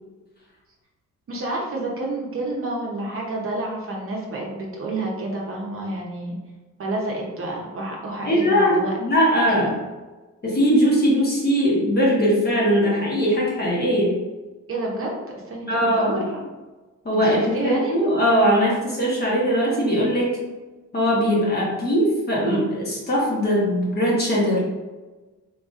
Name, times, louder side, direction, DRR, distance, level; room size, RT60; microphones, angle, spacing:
voice 1, 1.3-6.4 6.8-8.9 14.7-15.2 15.4-16.5 17.2-18.0, right 2 dB, 45° right, -2 dB, 0.8 m, -29 dB
voice 2, 8.2-9.7 10.4-14.1 15.7-16.3 17.0-20.3 20.9-24.6, equal, 30° left, -5 dB, 1.2 m, -20 dB
3.9 x 2.7 x 2.4 m, 1.2 s
cardioid pair, 115°, 30 cm